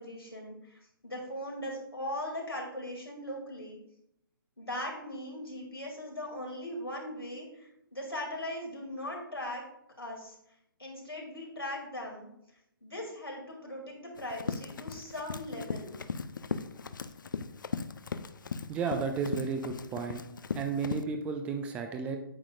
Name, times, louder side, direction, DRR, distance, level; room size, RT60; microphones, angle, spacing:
voice 1, 0.0-3.8 4.6-9.6 10.0-10.4 10.8-12.3 12.8-16.0, left 1 dB, 85° left, -1 dB, 2.6 m, -39 dB
Run, 14.2-21.0, left 5 dB, 60° left, 0.5 m, -38 dB
voice 2, 18.7-20.2 20.5-22.2, right 5 dB, 10° right, 5 dB, 0.4 m, -33 dB
9.0 x 7.2 x 2.5 m, 0.77 s
figure-of-eight pair, 135°, 12 cm